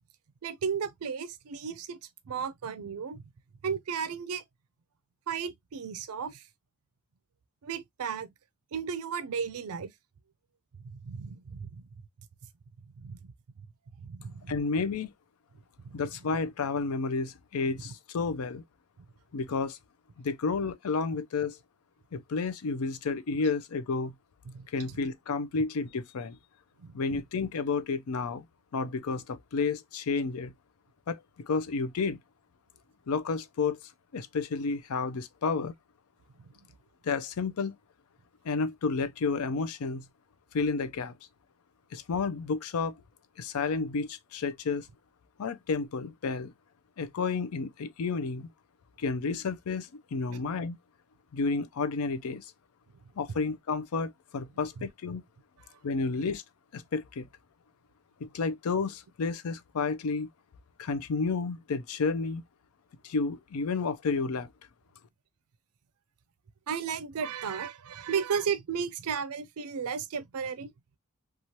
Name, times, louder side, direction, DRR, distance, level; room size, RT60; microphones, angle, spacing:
voice 1, 0.4-2.0 2.3-3.2 3.6-4.4 5.3-6.4 7.6-8.3 8.7-9.9 11.0-11.8 13.0-13.3 14.0-14.5 15.8-16.0 24.5-24.7 26.8-27.0 50.3-50.4 66.7-70.7, right 6 dB, 80° right, 0.4 m, -34 dB
voice 2, 14.5-15.1 15.9-18.6 19.3-19.8 20.2-21.6 22.1-24.1 24.7-26.4 26.9-28.4 28.7-30.5 31.1-32.2 33.1-33.8 34.1-35.7 37.0-37.7 38.4-40.1 40.5-41.1 41.9-43.0 43.4-44.9 45.4-46.5 47.0-48.5 49.0-50.8 51.3-52.5 53.2-55.2 55.8-56.4 56.7-57.3 58.2-60.3 60.8-62.4 63.0-64.5, left 4 dB, 80° left, 0.5 m, -31 dB
3.0 x 2.3 x 2.7 m
head